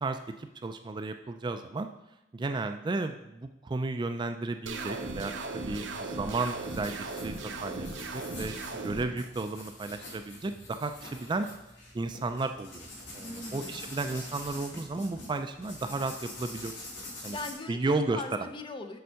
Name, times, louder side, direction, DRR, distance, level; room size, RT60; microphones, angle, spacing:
voice 1, 0.0-1.9 2.3-11.5 11.9-12.9 13.1-16.7 17.2-17.4 17.7-18.2, right 3 dB, 25° right, 8 dB, 0.3 m, -33 dB
sound 1, 4.7-9.0, right 3 dB, 70° right, 0.9 m, -37 dB
sound 2, 6.2-17.5, left 1 dB, 65° left, 2.5 m, -45 dB
voice 2, 13.2-13.8 17.3-19.0, left 3 dB, 25° left, 6 dB, 0.6 m, -40 dB
6.9 x 4.5 x 6.3 m, 0.88 s
head